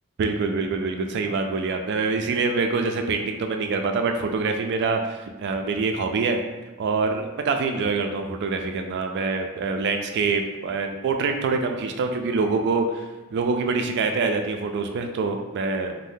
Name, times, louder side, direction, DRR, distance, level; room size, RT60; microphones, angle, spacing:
voice 1, 0.2-6.4 6.8-13.0 13.3-16.0, right 4 dB, 55° right, 5 dB, 0.3 m, -25 dB
2.6 x 2.1 x 3.4 m, 1.1 s
head